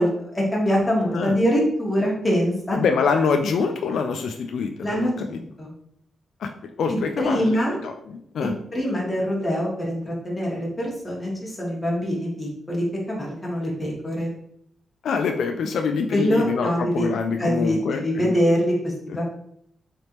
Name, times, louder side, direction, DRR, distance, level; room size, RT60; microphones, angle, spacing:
voice 1, 0.0-2.8 4.8-5.7 6.9-7.8 8.7-14.3 16.1-17.1 17.4-19.2, equal, 15° left, -4 dB, 1.4 m, -24 dB
voice 2, 2.7-5.4 6.4-6.5 6.8-8.5 15.0-18.4 19.1-19.2, left 5 dB, 80° left, 4 dB, 0.3 m, -25 dB
3.9 x 3.3 x 3.0 m, 0.70 s
wide cardioid pair, 125°, 0 cm